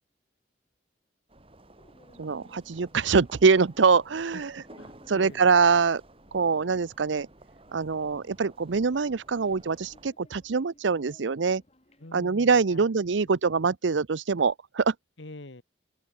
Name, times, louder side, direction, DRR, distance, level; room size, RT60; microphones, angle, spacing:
sound 1, 1.3-10.1, right 1 dB, 30° right, 2.6 m, -53 dB
sound 2, 1.7-12.3, left 1 dB, 35° left, 7.1 m, -61 dB
voice 1, 2.2-4.6 5.1-6.0 6.3-7.3 7.7-11.6 12.1-14.9, right 5 dB, 85° right, 0.7 m, -24 dB
voice 2, 4.3-5.4 12.0-12.9 15.2-15.6, left 2 dB, 85° left, 2.0 m, -46 dB
open air
head